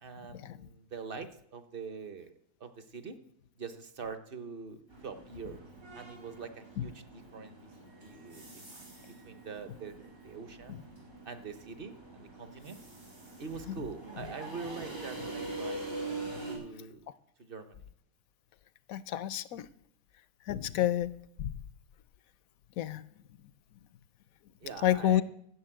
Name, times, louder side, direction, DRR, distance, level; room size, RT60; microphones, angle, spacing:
voice 1, 0.0-3.2 3.6-5.6 5.9-7.6 8.0-10.8 11.2-12.8 13.4-15.8 16.5-17.1 17.4-17.9 24.6-25.2, right 5 dB, 45° right, 10 dB, 1.0 m, -44 dB
sound 1, 4.9-16.6, right 2 dB, 85° right, 4.5 m, -44 dB
voice 2, 18.9-19.6 20.5-21.1 21.4-21.5 22.8-23.0 24.8-25.2, left 12 dB, 80° left, 16 dB, 1.1 m, -28 dB
12.5 x 7.0 x 8.9 m, 0.71 s
omnidirectional pair, 1.4 m